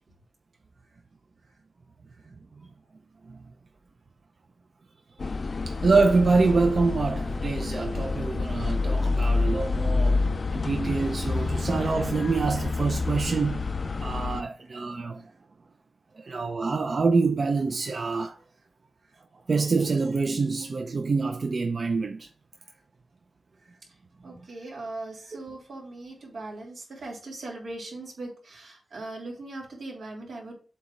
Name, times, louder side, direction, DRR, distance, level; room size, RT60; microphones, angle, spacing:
sound 1, 5.2-14.4, left 3 dB, 40° left, 0.4 m, -28 dB
voice 1, 5.7-10.2 10.5-13.6 14.0-15.2 16.3-18.3 19.5-22.3, right 4 dB, 50° right, 0.5 m, -25 dB
voice 2, 24.2-30.5, right 2 dB, 85° right, 2.8 m, -39 dB
8.0 x 2.9 x 6.1 m
wide cardioid pair, 120°, 0 cm